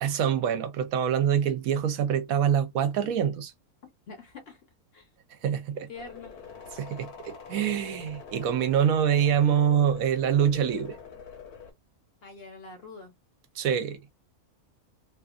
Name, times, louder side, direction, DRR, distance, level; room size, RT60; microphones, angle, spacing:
voice 1, 0.0-3.5 5.3-5.9 6.7-11.0 13.5-14.0, right 8 dB, 70° right, 1.0 m, -25 dB
voice 2, 4.1-4.6 4.9-5.1 5.9-6.4 12.2-13.1, left 3 dB, 50° left, 0.8 m, -44 dB
sound 1, 5.9-11.7, left 6 dB, 85° left, 1.2 m, -45 dB
2.8 x 2.4 x 2.4 m
omnidirectional pair, 1.6 m